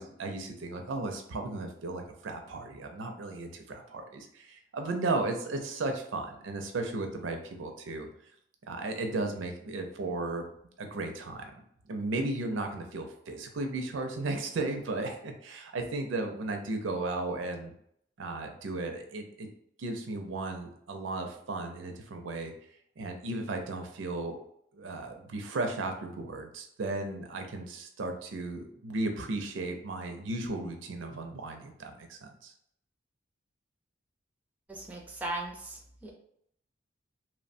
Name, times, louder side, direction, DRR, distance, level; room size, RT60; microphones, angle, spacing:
voice 1, 0.0-8.1 8.7-10.5 10.8-11.5 11.9-17.7 18.2-19.5 19.8-22.5 23.0-24.4 24.7-32.5, right 2 dB, 80° right, 4 dB, 0.5 m, -35 dB
voice 2, 34.7-36.1, right 2 dB, 10° right, -1 dB, 0.4 m, -38 dB
3.0 x 2.1 x 2.5 m, 0.69 s
head